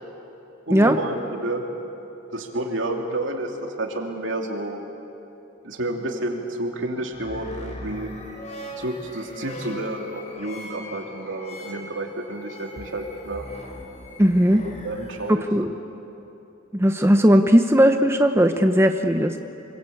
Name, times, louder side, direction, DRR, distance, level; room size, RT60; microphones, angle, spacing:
voice 1, 0.7-1.6 2.3-4.8 5.6-8.1 8.8-13.4 14.8-15.4, right 1 dB, 70° right, 2 dB, 2.9 m, -30 dB
sound 1, 7.1-15.3, left 1 dB, 35° left, 3.6 m, -39 dB
voice 2, 14.2-14.6 15.3-15.7 16.7-19.4, equal, 15° right, 6 dB, 0.8 m, -17 dB
26.5 x 23.5 x 8.6 m, 2.9 s
head